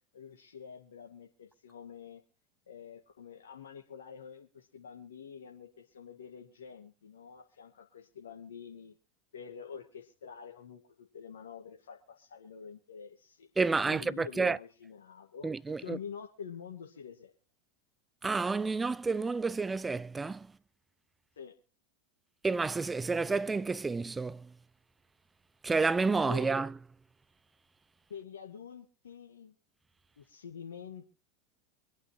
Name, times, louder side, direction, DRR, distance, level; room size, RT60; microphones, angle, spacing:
voice 1, 0.1-2.2 2.7-8.9 9.3-13.5 13.9-15.5 15.8-17.3 21.4-21.5 26.3-26.5 28.1-29.6 30.2-31.1, left 7 dB, 85° left, 1.8 m, -47 dB
voice 2, 13.6-14.6 15.4-16.0 18.2-20.5 22.4-24.4 25.6-26.7, right 4 dB, 15° right, 0.6 m, -30 dB
25.5 x 8.9 x 3.1 m
hypercardioid pair, 90°, 0 cm